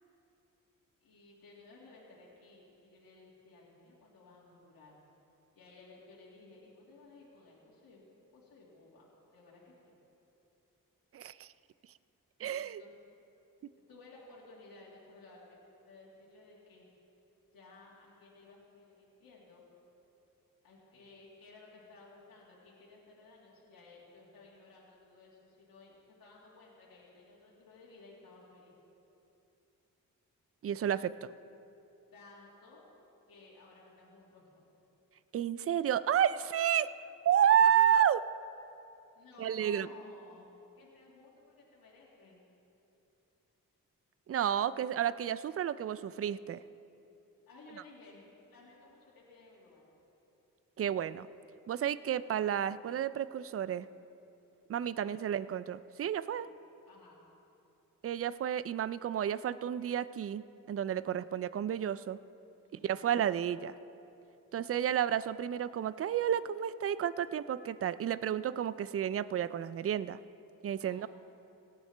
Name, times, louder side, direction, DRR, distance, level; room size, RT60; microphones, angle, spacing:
voice 1, 1.0-5.0 5.6-8.0 8.3-10.0 12.6-12.9 13.7-16.9 17.5-19.6 20.6-28.7 32.1-32.8 33.3-34.8 39.2-42.4 47.5-48.2 48.5-49.9 54.9-55.3 56.8-57.2 62.6-62.9 64.5-64.7 70.8-71.1, left 3 dB, 80° left, -6 dB, 2.2 m, -57 dB
voice 2, 11.1-11.5 12.4-12.8 30.6-31.3 35.3-36.9 37.2-38.2 39.4-39.9 44.3-46.6 50.8-51.3 51.7-53.9 54.7-56.5 58.0-62.2 62.7-63.7 64.5-70.2 70.6-71.1, right 9 dB, 40° right, 16 dB, 0.4 m, -31 dB
18.0 x 11.5 x 3.3 m, 2.9 s
cardioid pair, 60°, 35 cm